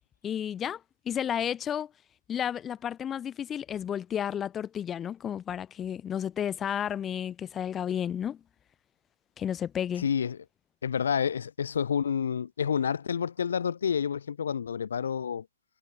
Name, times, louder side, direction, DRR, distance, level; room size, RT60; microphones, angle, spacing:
voice 1, 0.2-0.8 1.1-1.9 2.3-8.4 9.4-10.0, left 9 dB, 15° left, 2.6 m, -32 dB
voice 2, 10.0-10.4 10.8-15.5, left 7 dB, 65° left, 2.1 m, -29 dB
figure-of-eight pair, 125°, 0 cm